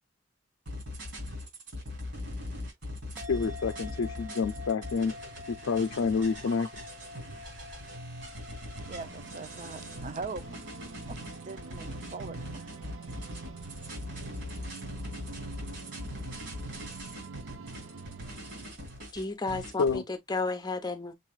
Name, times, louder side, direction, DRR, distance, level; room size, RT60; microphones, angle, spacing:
sound 1, 0.7-20.0, left 1 dB, 65° right, 3.4 m, -41 dB
sound 2, 3.2-19.7, left 3 dB, 10° right, 0.8 m, -50 dB
voice 1, 3.3-5.1 5.5-6.8 19.8-20.0, left 5 dB, 90° left, 0.4 m, -28 dB
sound 3, 8.8-18.7, right 4 dB, 85° right, 0.7 m, -46 dB
voice 2, 8.9-10.7 11.1-12.7, right 4 dB, 35° right, 0.5 m, -41 dB
voice 3, 19.1-21.1, left 3 dB, 20° left, 0.8 m, -33 dB
6.6 x 3.2 x 2.3 m
head